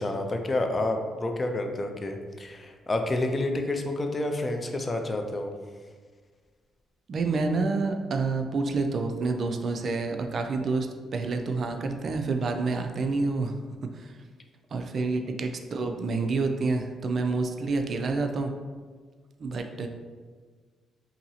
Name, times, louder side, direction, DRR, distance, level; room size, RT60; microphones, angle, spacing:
voice 1, 0.0-5.5 15.0-15.1, left 2 dB, 25° left, 4 dB, 0.4 m, -29 dB
voice 2, 7.1-10.9 11.1-13.5 13.9-14.2 14.7-18.5 19.4-19.9, right 3 dB, 50° right, 5 dB, 0.3 m, -28 dB
2.7 x 2.6 x 2.7 m, 1.5 s
cardioid pair, 90°, 0 cm